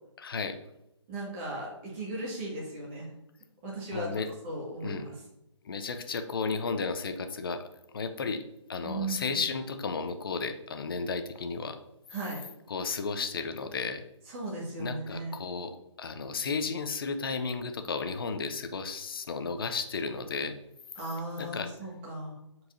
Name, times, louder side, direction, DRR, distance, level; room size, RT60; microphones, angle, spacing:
voice 1, 0.2-0.6 3.9-4.3 4.8-5.1 5.6-7.7 7.9-8.4 8.7-11.8 12.7-14.0 14.8-20.6 21.4-21.7, left 4 dB, 45° left, 9 dB, 0.7 m, -33 dB
voice 2, 1.1-3.1 3.6-4.1 4.4-5.2 8.8-9.3 12.1-12.4 14.3-15.3 21.0-22.3, right 2 dB, 25° right, -3 dB, 1.9 m, -36 dB
7.6 x 4.7 x 2.7 m, 0.86 s
figure-of-eight pair, 150°, 16 cm